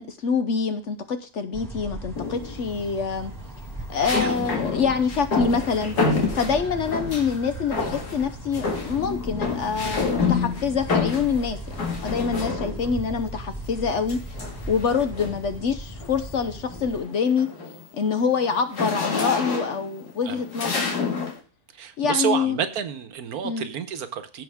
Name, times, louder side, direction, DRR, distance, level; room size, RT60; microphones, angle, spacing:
voice 1, 0.0-3.3 3.9-6.0 6.3-14.2 14.7-17.5 17.9-21.1 22.0-22.6 23.4-23.7, left 5 dB, 55° left, 0.9 m, -26 dB
sound 1, 1.5-17.0, right 1 dB, 10° right, 1.8 m, -37 dB
sound 2, 2.2-2.7 4.0-7.4 7.7-8.3 8.5-13.0 14.1-15.5 16.0-16.3 16.6-21.4, left 4 dB, 80° left, 2.4 m, -28 dB
voice 2, 4.0-4.3 20.3-20.4 21.8-24.4, right 8 dB, 70° right, 1.4 m, -29 dB
15.5 x 5.8 x 3.5 m
omnidirectional pair, 1.7 m